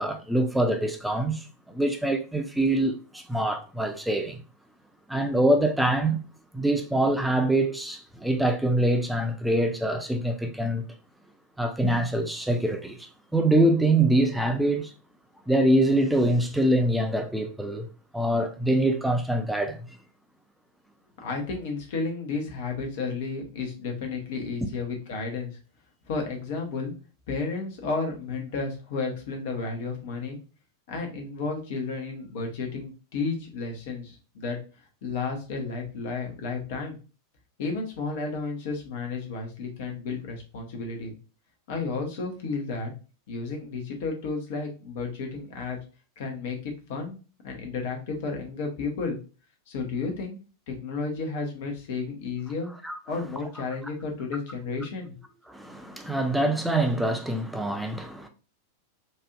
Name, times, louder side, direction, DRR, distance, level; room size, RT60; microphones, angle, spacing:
voice 1, 0.0-4.4 5.1-6.2 6.5-10.9 11.6-14.9 15.5-17.9 18.1-19.9 52.8-52.9 55.5-58.3, right 1 dB, 5° right, 0.5 m, -24 dB
voice 2, 21.2-25.6 26.1-26.9 27.3-30.4 30.9-34.6 35.0-37.0 37.6-41.1 41.7-42.9 43.3-45.8 46.2-47.2 47.4-49.2 49.7-50.4 50.7-52.7 53.1-55.2, left 4 dB, 50° left, 1.0 m, -32 dB
4.1 x 2.6 x 2.4 m
figure-of-eight pair, 90°, 0 cm